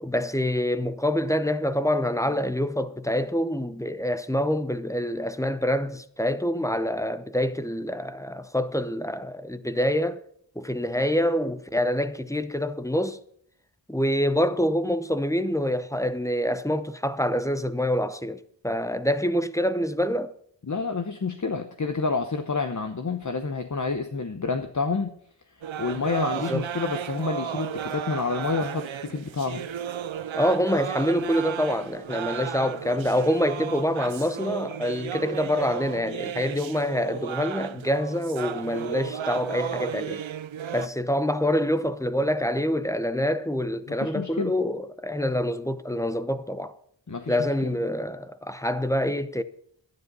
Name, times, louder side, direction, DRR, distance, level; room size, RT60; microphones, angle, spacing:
voice 1, 0.0-10.2 10.6-13.2 13.9-20.3 26.5-26.6 30.3-40.2 40.7-46.7 47.3-49.4, equal, 5° left, 0.7 m, -26 dB
voice 2, 20.7-25.1 25.5-29.7 43.9-44.5 47.1-47.4 47.6-47.8, left 4 dB, 40° left, 0.9 m, -29 dB
sound 1, 25.6-40.9, right 9 dB, 85° right, 0.6 m, -34 dB
12.0 x 10.5 x 5.4 m
wide cardioid pair, 55°, 45 cm